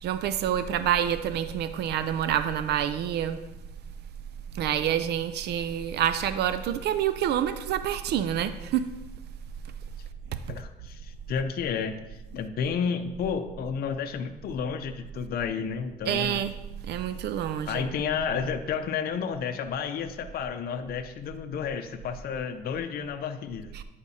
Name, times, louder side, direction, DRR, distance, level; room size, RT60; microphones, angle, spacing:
voice 1, 0.0-3.4 4.5-8.9 16.1-16.5 16.8-17.9 23.7-23.8, right 10 dB, 70° right, 11 dB, 0.4 m, -27 dB
voice 2, 10.5-16.4 17.7-23.7, left 6 dB, 60° left, 8 dB, 0.5 m, -31 dB
9.8 x 4.9 x 2.7 m, 0.99 s
cardioid pair, 90°, 18 cm